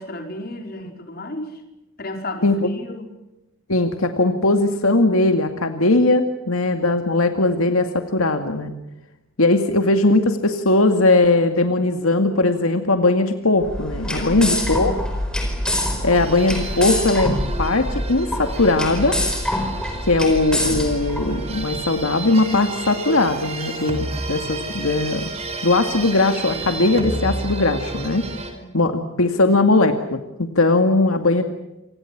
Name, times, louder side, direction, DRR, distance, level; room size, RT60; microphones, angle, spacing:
voice 1, 0.0-1.6 2.0-3.2 14.1-15.0 28.5-28.9, left 1 dB, 45° left, 4 dB, 4.8 m, -34 dB
voice 2, 3.7-8.7 9.4-14.9 16.0-19.2 20.0-25.3 25.6-28.3 28.7-31.4, left 2 dB, 85° left, 6 dB, 2.2 m, -19 dB
sound 1, 13.6-21.8, left 1 dB, 5° left, 4.7 m, -25 dB
sound 2, 16.1-28.5, right 2 dB, 30° right, 5.0 m, -31 dB
29.0 x 26.0 x 6.1 m, 0.95 s
head